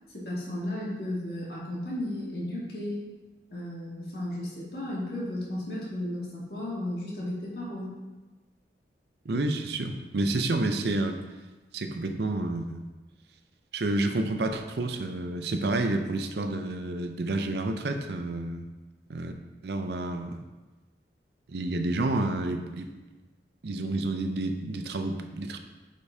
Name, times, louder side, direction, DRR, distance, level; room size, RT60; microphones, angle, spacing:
voice 1, 0.1-3.0 3.5-7.9, left 1 dB, 60° left, -6 dB, 2.0 m, -34 dB
voice 2, 9.2-11.2 11.7-12.8 13.7-18.7 19.1-19.3 19.6-20.4 21.5-22.9 23.6-25.6, right 2 dB, 65° right, 6 dB, 0.5 m, -29 dB
8.2 x 5.2 x 2.7 m, 1.2 s
head